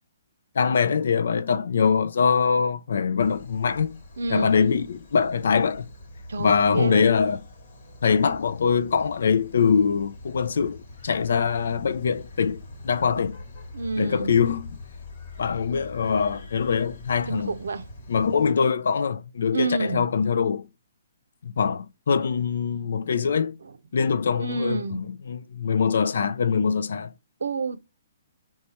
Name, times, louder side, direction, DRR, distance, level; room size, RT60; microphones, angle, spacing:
voice 1, 0.6-3.9 4.3-5.9 6.4-7.4 8.0-13.4 14.0-14.7 15.4-17.5 18.1-20.7 21.4-23.6 23.9-27.1, left 6 dB, 70° left, 0.3 m, -23 dB
sound 1, 3.2-18.5, left 2 dB, 50° left, 1.2 m, -43 dB
voice 2, 4.2-4.6 6.3-7.1 13.7-14.4 17.3-17.9 19.5-20.1 23.6-23.7 24.4-25.1 27.4-27.8, right 3 dB, 90° right, 0.5 m, -29 dB
4.0 x 2.3 x 2.8 m
hypercardioid pair, 165°, 0 cm